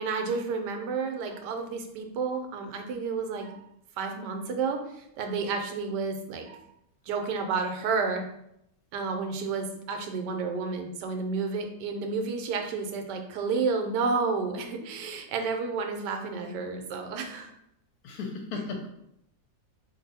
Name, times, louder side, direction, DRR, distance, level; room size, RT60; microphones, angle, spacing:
voice 1, 0.0-3.6 4.0-6.6 7.1-8.2 8.9-17.5, right 4 dB, 80° right, 4 dB, 1.2 m, -31 dB
voice 2, 18.0-18.9, left 4 dB, 70° left, 2 dB, 1.0 m, -35 dB
2.6 x 2.6 x 4.0 m, 0.77 s
omnidirectional pair, 1.8 m